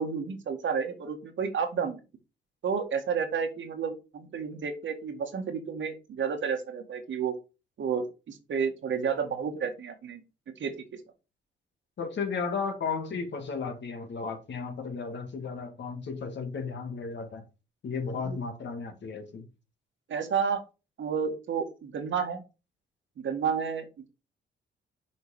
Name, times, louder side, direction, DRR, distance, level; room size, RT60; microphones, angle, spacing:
voice 1, 0.0-2.0 2.6-7.4 7.8-10.2 10.6-10.7 18.1-18.4 20.1-20.6 21.0-22.4 23.2-23.9, right 6 dB, 65° right, 2.0 m, -31 dB
voice 2, 12.0-17.4 17.8-19.5, left 5 dB, 60° left, 2.0 m, -34 dB
6.7 x 4.5 x 4.9 m
supercardioid pair, 65°, 21 cm